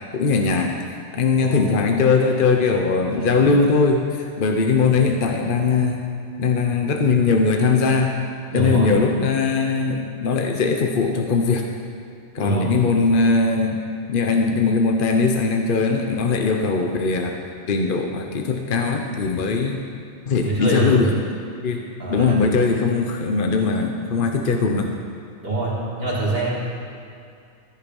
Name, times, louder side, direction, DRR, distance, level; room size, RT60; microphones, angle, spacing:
voice 1, 0.1-0.8 1.1-6.0 6.4-8.2 8.5-11.6 12.3-13.8 14.1-17.3 17.7-19.8 20.3-21.1 21.6-25.0, left 4 dB, 45° left, 3 dB, 0.9 m, -20 dB
voice 2, 3.2-3.5 8.5-8.9 12.4-12.7 20.4-21.1 22.0-22.5 25.4-26.5, right 2 dB, 45° right, -6 dB, 3.2 m, -25 dB
15.0 x 10.0 x 5.3 m, 2.4 s
omnidirectional pair, 1.4 m